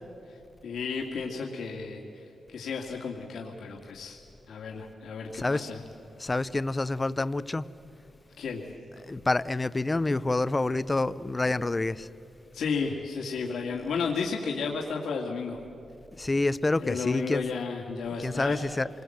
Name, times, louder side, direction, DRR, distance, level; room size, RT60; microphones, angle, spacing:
voice 1, 0.3-5.8 8.4-8.6 12.5-15.6 16.8-18.6, left 5 dB, 85° left, 2.2 m, -33 dB
voice 2, 5.3-5.7 6.2-7.7 9.1-12.1 16.2-17.5 18.2-18.9, left 2 dB, 15° left, 0.5 m, -27 dB
27.5 x 21.0 x 7.8 m
wide cardioid pair, 170°, 0 cm